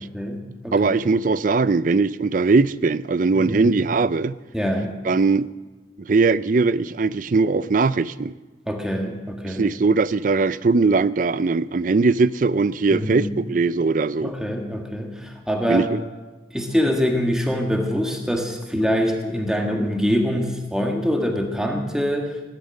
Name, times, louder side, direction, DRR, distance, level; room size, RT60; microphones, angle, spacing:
voice 1, 0.1-0.9 3.3-3.7 4.5-4.9 8.7-9.7 12.9-13.3 14.2-15.9 16.5-22.4, equal, 5° right, 2 dB, 1.8 m, -24 dB
voice 2, 0.7-4.4 5.0-5.5 6.0-8.3 9.5-14.3 15.7-16.0, right 4 dB, 45° right, 17 dB, 0.4 m, -20 dB
17.5 x 11.5 x 6.5 m, 1.2 s
head